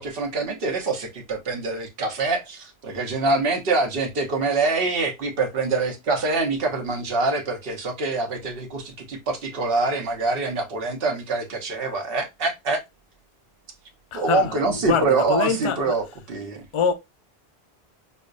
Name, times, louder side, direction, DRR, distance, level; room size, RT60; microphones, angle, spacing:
voice 1, 0.0-12.8 14.1-16.6, right 3 dB, 65° right, 1.0 m, -25 dB
voice 2, 14.1-16.0 16.7-16.9, left 6 dB, 50° left, 0.3 m, -25 dB
5.3 x 2.1 x 2.3 m
omnidirectional pair, 1.1 m